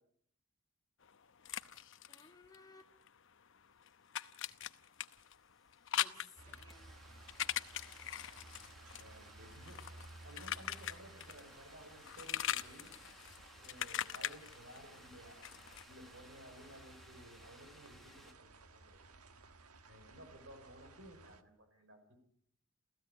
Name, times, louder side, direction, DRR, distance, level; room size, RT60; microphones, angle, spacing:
sound 1, 1.0-3.2 3.4-11.6 11.8-15.8, left 11 dB, 60° left, 0.8 m, -41 dB
voice 1, 2.1-2.9 5.9-7.2 8.5-8.6, left 3 dB, 15° left, 3 dB, 2.3 m, -61 dB
sound 2, 4.9-18.3, left 1 dB, ahead, 1.6 m, -61 dB
sound 3, 6.4-21.4, right 3 dB, 90° right, 1.5 m, -58 dB
voice 2, 9.0-9.8 10.2-12.9 13.6-15.4 15.9-19.0 19.9-22.2, equal, 55° right, 6 dB, 6.0 m, -56 dB
29.0 x 15.5 x 8.5 m, 0.70 s
head